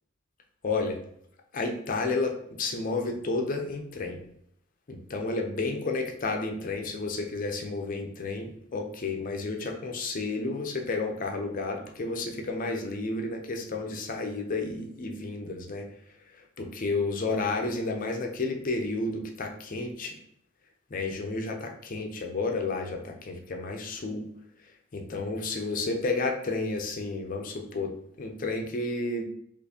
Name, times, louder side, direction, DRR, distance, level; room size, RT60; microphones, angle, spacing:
voice 1, 0.6-1.0 1.5-4.2 4.9-15.9 16.6-20.2 20.9-24.3 24.9-29.2, left 3 dB, 40° left, 3 dB, 0.5 m, -31 dB
4.4 x 2.5 x 2.7 m, 0.70 s
head